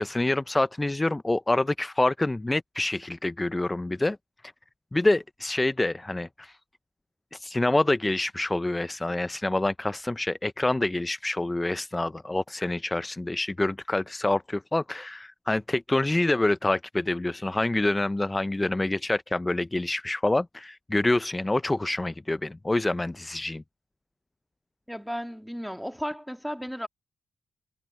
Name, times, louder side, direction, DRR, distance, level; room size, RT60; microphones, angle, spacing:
voice 1, 0.0-4.2 4.9-6.6 7.3-23.6, left 2 dB, 15° left, 0.4 m, -26 dB
voice 2, 24.9-26.9, equal, ahead, 2.3 m, -34 dB
cardioid pair, 75°, 0 cm